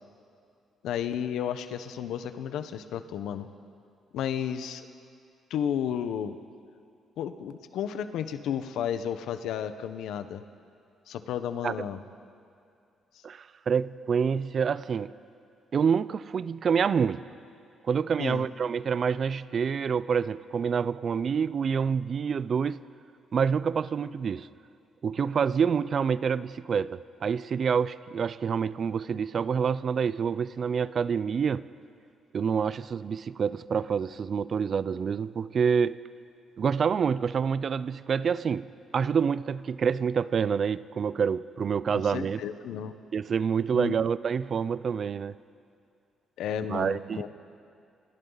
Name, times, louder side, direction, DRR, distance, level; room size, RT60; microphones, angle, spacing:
voice 1, 0.8-3.5 4.1-4.9 5.5-6.4 7.2-10.4 11.1-12.0 18.2-18.4 41.9-42.9 43.7-43.9 46.4-47.3, left 9 dB, 80° left, 10 dB, 1.1 m, -32 dB
voice 2, 13.2-15.1 15.7-17.2 17.9-22.8 23.3-24.5 25.0-31.7 32.3-36.0 36.6-42.4 43.1-45.4 46.7-47.2, right 6 dB, 50° right, 17 dB, 0.6 m, -27 dB
29.0 x 26.5 x 4.1 m, 2.5 s
cardioid pair, 90°, 0 cm